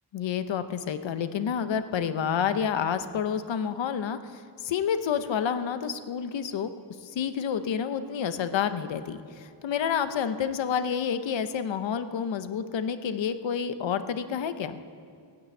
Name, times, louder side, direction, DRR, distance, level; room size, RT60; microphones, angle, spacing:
voice 1, 0.1-6.7 7.0-14.8, left 7 dB, 90° left, 11 dB, 0.9 m, -29 dB
15.5 x 9.4 x 8.3 m, 2.2 s
wide cardioid pair, 120°, 43 cm